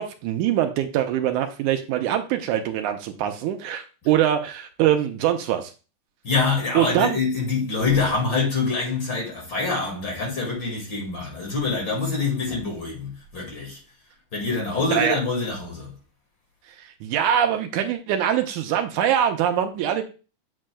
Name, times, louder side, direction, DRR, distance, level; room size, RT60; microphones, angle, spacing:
voice 1, 0.0-5.7 6.8-7.2 14.9-15.2 17.0-20.0, right 10 dB, 80° right, 2.1 m, -23 dB
voice 2, 6.2-13.8 14.3-15.9, left 4 dB, 40° left, 2.5 m, -25 dB
8.1 x 7.5 x 2.3 m
omnidirectional pair, 3.7 m